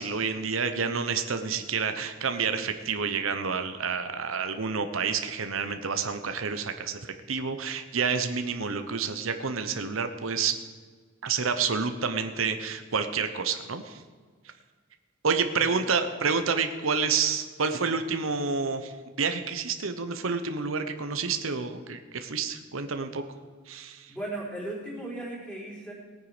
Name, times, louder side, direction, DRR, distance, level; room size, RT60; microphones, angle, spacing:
voice 1, 0.0-10.6 11.2-14.0 15.2-18.9 19.2-23.2 23.7-24.1, right 5 dB, 90° right, 8 dB, 1.0 m, -29 dB
voice 2, 15.6-15.9 17.8-17.9 24.1-25.9, right 1 dB, 5° left, -5 dB, 4.4 m, -37 dB
18.5 x 9.4 x 5.0 m, 1.5 s
head